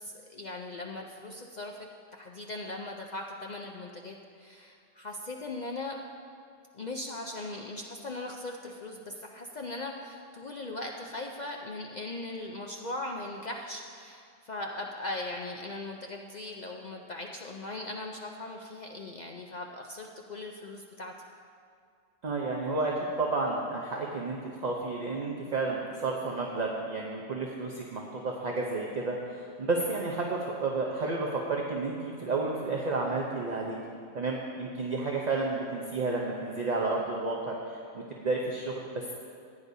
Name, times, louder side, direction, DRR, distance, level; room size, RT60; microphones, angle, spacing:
voice 1, 0.0-1.8 2.1-6.0 6.7-21.1, left 2 dB, 70° left, 1 dB, 0.4 m, -39 dB
voice 2, 22.2-33.8 34.1-39.1, right 3 dB, 40° right, -1 dB, 0.6 m, -31 dB
14.5 x 9.9 x 2.7 m, 2.3 s
omnidirectional pair, 1.5 m